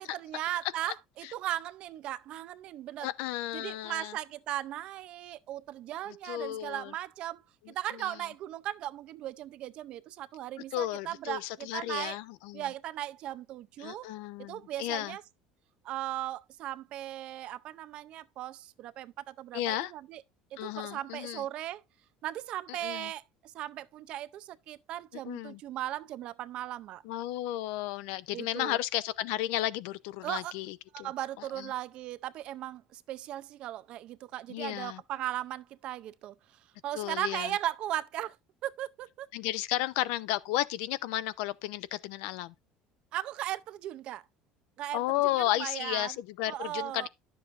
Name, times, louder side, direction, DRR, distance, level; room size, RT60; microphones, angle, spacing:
voice 1, 0.0-3.1 3.5-7.4 7.7-12.2 12.5-14.1 14.5-15.2 15.8-20.2 20.6-21.8 22.2-27.0 28.3-28.8 30.2-30.5 31.0-36.3 36.8-38.4 38.6-39.3 43.1-44.2 44.8-45.0 45.6-46.1 46.5-47.1, right 13 dB, 40° right, 0.5 m, -37 dB
voice 2, 3.0-4.2 6.1-6.9 7.9-8.2 10.7-12.7 13.8-15.2 19.5-19.9 20.6-21.5 22.7-23.1 25.2-25.6 27.0-31.1 31.4-31.7 34.5-35.0 36.9-37.5 39.3-42.5 44.9-47.1, left 15 dB, 70° left, 0.6 m, -33 dB
11.0 x 7.0 x 2.5 m
cardioid pair, 175°, 3 cm